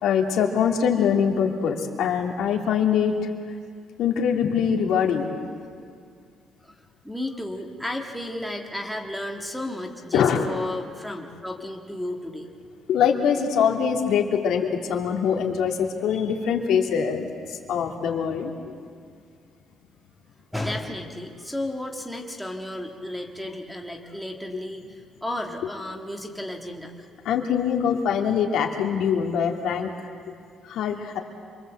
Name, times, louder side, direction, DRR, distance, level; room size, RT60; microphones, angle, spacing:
voice 1, 0.0-3.3 4.0-5.3 10.1-10.5 12.9-18.5 27.2-29.9 30.7-31.2, left 7 dB, 70° left, 2 dB, 2.6 m, -23 dB
voice 2, 7.0-12.5 20.5-26.9, left 1 dB, ahead, 0 dB, 1.6 m, -33 dB
27.5 x 23.5 x 8.0 m, 2.2 s
cardioid pair, 175°, 0 cm